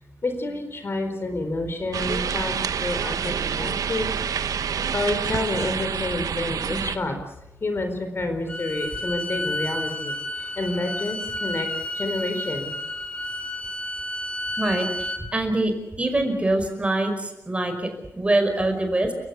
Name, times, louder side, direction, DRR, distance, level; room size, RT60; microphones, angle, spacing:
voice 1, 0.2-2.5 2.8-4.1 4.9-7.2 7.6-11.7 11.9-12.7, left 2 dB, 40° left, 6 dB, 4.4 m, -29 dB
sound 1, 1.9-7.0, right 7 dB, 80° right, 1.3 m, -27 dB
Bowed string instrument, 8.5-15.2, left 1 dB, 20° left, 5.3 m, -31 dB
voice 2, 14.6-15.7 16.0-19.1, right 2 dB, 20° right, 6 dB, 5.2 m, -24 dB
29.5 x 16.5 x 8.4 m, 0.86 s
cardioid pair, 95°, 6 cm